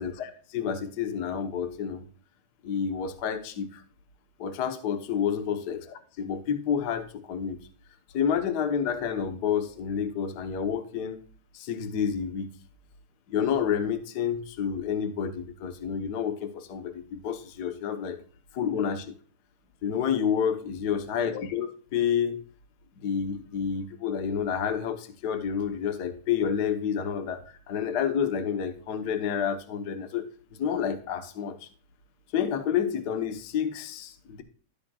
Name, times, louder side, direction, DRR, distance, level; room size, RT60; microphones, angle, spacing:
voice 1, 0.0-2.0 2.6-3.8 4.4-7.6 8.1-11.2 11.5-12.5 13.3-18.2 18.5-19.2 19.8-22.4 23.0-27.4 27.7-30.3 30.6-31.7 32.3-34.4, left 7 dB, 70° left, 8 dB, 0.9 m, -29 dB
13.0 x 8.8 x 2.4 m, 0.43 s
omnidirectional pair, 3.5 m